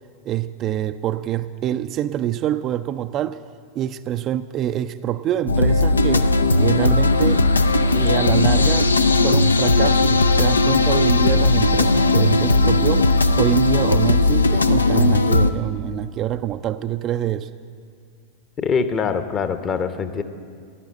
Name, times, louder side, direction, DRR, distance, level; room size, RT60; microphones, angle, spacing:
voice 1, 0.2-3.4 3.7-7.5 7.9-8.9 9.2-13.1 13.4-17.5, right 11 dB, 35° right, 0.4 m, -25 dB
sound 1, 5.5-15.5, left 2 dB, 75° left, 0.5 m, -17 dB
voice 2, 18.6-20.2, left 5 dB, 25° left, 0.9 m, -23 dB
15.0 x 12.0 x 7.8 m
figure-of-eight pair, 90°, 0 cm